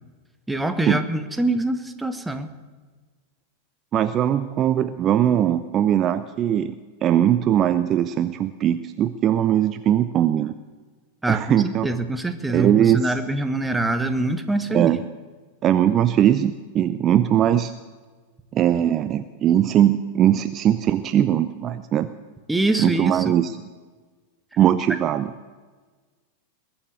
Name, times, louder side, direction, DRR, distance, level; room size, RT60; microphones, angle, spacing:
voice 1, 0.5-2.5 11.2-15.0 22.5-23.3, right 2 dB, 5° right, 8 dB, 1.2 m, -24 dB
voice 2, 3.9-6.7 7.0-10.5 11.3-11.9 12.5-13.1 14.7-15.0 15.6-17.7 18.5-22.1 22.8-23.5 24.6-25.3, right 10 dB, 30° right, 11 dB, 0.5 m, -20 dB
21.0 x 7.2 x 9.5 m, 1.4 s
figure-of-eight pair, 90°, 0 cm